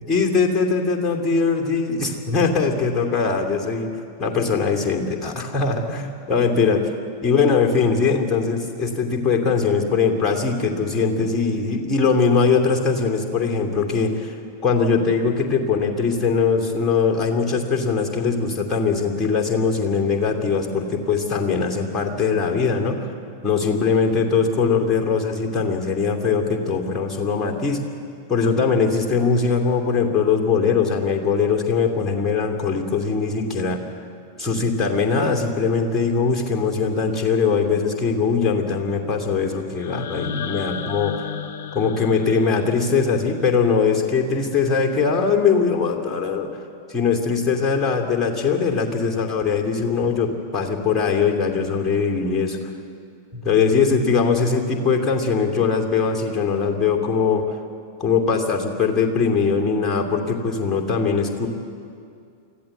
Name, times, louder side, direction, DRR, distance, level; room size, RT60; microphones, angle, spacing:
voice 1, 0.0-3.9 4.2-6.9 7.2-14.3 14.6-23.1 23.4-27.8 28.3-33.8 34.4-41.1 41.7-46.5 46.9-52.6 53.3-57.4 58.0-61.5, left 5 dB, 15° left, 2 dB, 2.8 m, -21 dB
sound 1, 39.8-43.8, left 7 dB, 50° left, 1.3 m, -34 dB
24.5 x 15.0 x 8.0 m, 2.4 s
figure-of-eight pair, 90°, 0 cm